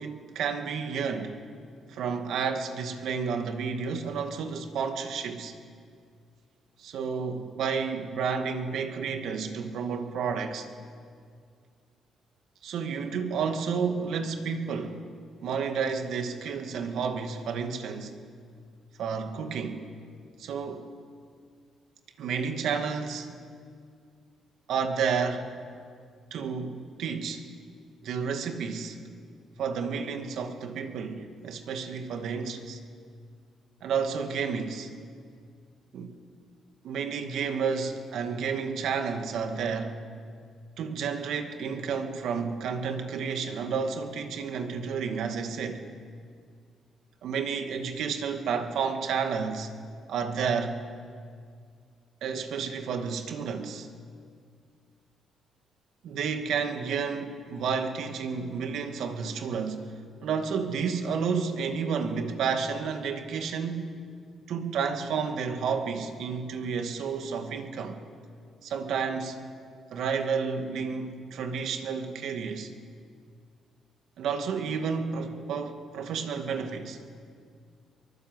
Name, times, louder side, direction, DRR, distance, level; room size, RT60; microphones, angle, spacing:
voice 1, 0.0-1.4 1.9-5.5 6.8-10.7 12.6-15.0 15.4-18.1 19.0-19.8 20.4-20.9 22.2-23.4 24.7-25.5 26.3-27.5 28.0-29.0 29.6-32.8 33.8-34.9 35.9-36.1 36.8-40.0 40.8-45.8 47.2-49.7 50.1-50.8 52.2-53.9 56.0-59.9 60.2-64.0 64.5-68.0 68.6-69.4 69.9-72.7 74.2-77.0, right 6 dB, 75° right, 2.2 m, -31 dB
23.5 x 22.5 x 8.0 m
cardioid pair, 90°, 0 cm